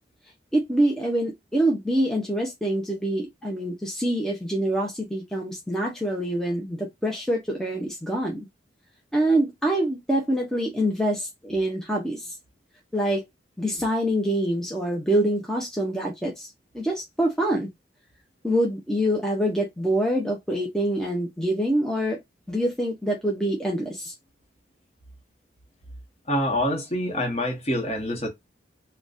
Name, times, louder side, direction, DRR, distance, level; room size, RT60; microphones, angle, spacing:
voice 1, 0.5-8.5 9.1-12.3 12.9-13.2 13.6-16.5 16.7-17.7 18.4-22.2 22.5-24.1, right 1 dB, 5° left, 0.6 m, -25 dB
voice 2, 26.3-28.3, left 1 dB, 35° left, 1.0 m, -26 dB
3.8 x 2.2 x 2.5 m
head